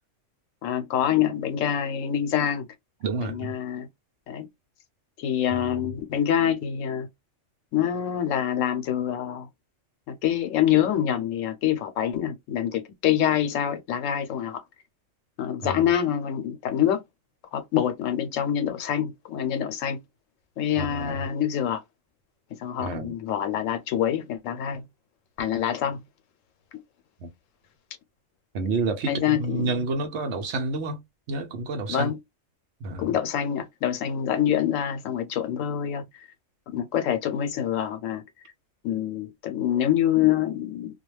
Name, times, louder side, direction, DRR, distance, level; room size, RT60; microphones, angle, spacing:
voice 1, 0.6-2.7 3.2-3.9 4.3-4.5 5.2-7.1 7.7-9.5 10.1-14.6 15.4-17.0 17.5-20.0 20.6-21.8 22.6-24.8 25.4-26.0 29.0-29.7 31.9-32.2 33.0-36.0 36.7-38.2 38.8-41.0, left 10 dB, 85° left, 1.0 m, -26 dB
voice 2, 3.0-3.5 5.5-5.9 15.6-15.8 20.8-21.2 22.8-23.2 27.2-27.3 28.5-32.1 32.8-33.1, right 3 dB, 65° right, 0.9 m, -30 dB
2.3 x 2.2 x 3.0 m
omnidirectional pair, 1.3 m